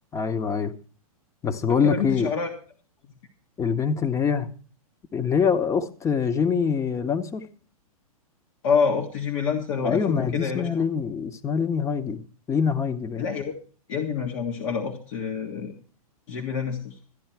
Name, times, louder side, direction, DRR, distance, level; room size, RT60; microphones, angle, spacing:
voice 1, 0.1-0.7 1.4-2.3 3.6-4.5 5.1-7.5 9.8-12.2 12.5-13.2, left 6 dB, 15° left, 0.9 m, -24 dB
voice 2, 1.7-2.5 8.6-10.8 13.2-13.5 13.9-15.7 16.3-17.0, left 6 dB, 55° left, 1.7 m, -27 dB
13.5 x 10.0 x 4.6 m
hypercardioid pair, 125°, 19 cm